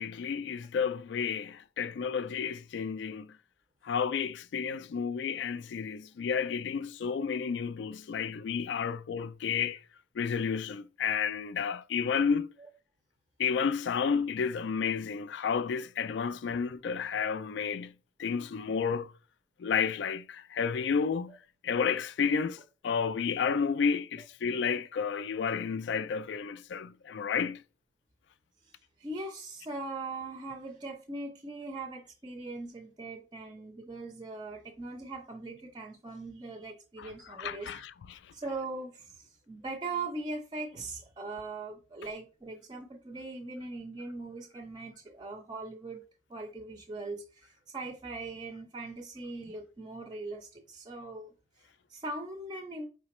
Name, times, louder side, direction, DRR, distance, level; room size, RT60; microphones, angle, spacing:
voice 1, 0.0-3.4 3.8-9.8 10.1-12.5 13.4-19.1 19.6-27.6 37.0-38.2, left 6 dB, 65° left, 0.3 m, -31 dB
voice 2, 29.0-37.8 38.3-46.0 46.3-51.3 51.6-52.9, right 3 dB, 20° right, 0.4 m, -40 dB
5.0 x 3.1 x 3.0 m
head